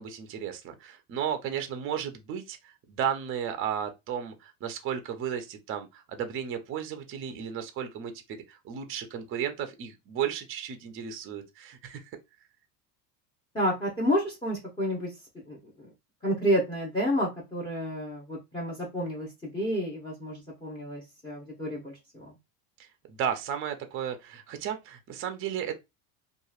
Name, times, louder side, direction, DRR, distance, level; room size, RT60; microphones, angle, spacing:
voice 1, 0.0-12.1 22.8-25.8, right 8 dB, 30° right, 0.6 m, -34 dB
voice 2, 13.5-15.1 15.5-15.6 16.2-21.9 22.2-22.3, equal, 10° left, 0.8 m, -30 dB
2.9 x 2.4 x 2.3 m
supercardioid pair, 125°, 42 cm